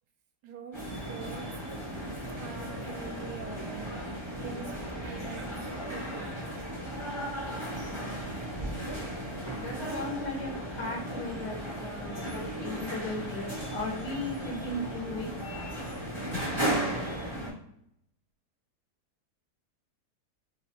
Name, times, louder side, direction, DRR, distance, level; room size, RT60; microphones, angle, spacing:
voice 1, 0.4-1.6 2.2-3.9 4.4-5.5 5.9-6.4, right 5 dB, 85° right, 4 dB, 1.3 m, -44 dB
sound 1, 0.7-17.5, right 1 dB, 20° left, 1.5 m, -36 dB
voice 2, 9.3-10.5 10.8-15.3 16.3-16.4, left 2 dB, 75° left, -3 dB, 1.5 m, -37 dB
3.3 x 3.1 x 2.9 m, 0.74 s
omnidirectional pair, 1.7 m